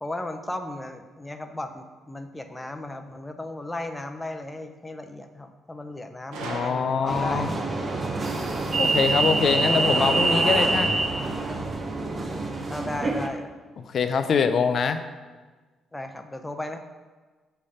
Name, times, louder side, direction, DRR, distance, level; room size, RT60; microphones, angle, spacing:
voice 1, 0.0-7.6 12.7-13.6 15.9-16.8, left 1 dB, 10° left, 6 dB, 0.6 m, -35 dB
Gunshot gunfire, 6.3-7.5, right 3 dB, 85° right, 0.7 m, -37 dB
voice 2, 6.4-7.6 8.7-11.0 13.8-15.0, left 6 dB, 55° left, 9 dB, 0.5 m, -24 dB
sound 1, 7.1-13.3, right 3 dB, 30° right, 0.8 m, -25 dB
6.4 x 3.4 x 5.7 m, 1.3 s
cardioid pair, 90°, 0 cm